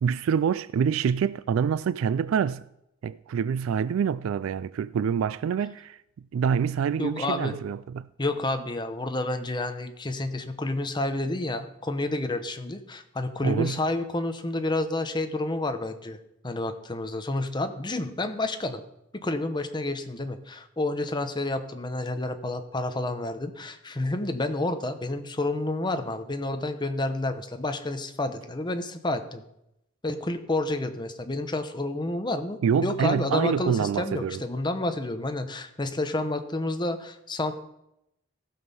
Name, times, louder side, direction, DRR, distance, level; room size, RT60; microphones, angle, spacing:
voice 1, 0.0-2.7 3.0-6.0 6.3-8.1 13.4-13.8 32.6-34.4, right 7 dB, 80° right, 0.3 m, -26 dB
voice 2, 7.0-7.6 8.2-16.2 16.4-18.8 19.1-29.4 30.0-37.5, left 2 dB, 20° left, 0.9 m, -29 dB
15.5 x 6.3 x 5.5 m
head